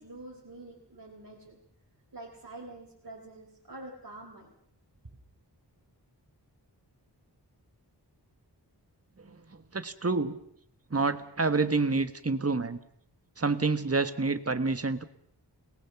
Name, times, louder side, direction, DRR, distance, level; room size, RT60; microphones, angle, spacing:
voice 1, 0.0-1.6 2.1-4.5, right 2 dB, 55° right, -2 dB, 4.1 m, -46 dB
voice 2, 9.7-10.4 10.9-12.8 13.4-15.0, right 3 dB, 35° right, 10 dB, 1.4 m, -28 dB
29.0 x 19.0 x 6.0 m, 0.67 s
wide cardioid pair, 50°, 42 cm